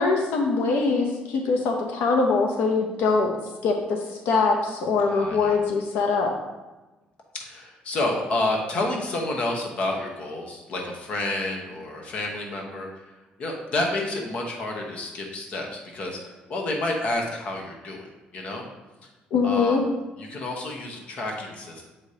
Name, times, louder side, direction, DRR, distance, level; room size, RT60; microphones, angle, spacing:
voice 1, 0.0-3.3 3.6-4.0 4.3-6.3 19.3-19.8, left 4 dB, 85° left, 2 dB, 0.7 m, -22 dB
voice 2, 5.1-5.6 7.4-13.0 13.4-15.7 15.9-18.1 18.3-18.6 19.4-19.8 20.2-21.9, left 2 dB, 40° left, 1 dB, 1.0 m, -29 dB
7.2 x 4.9 x 2.8 m, 1.1 s
cardioid pair, 175°, 3 cm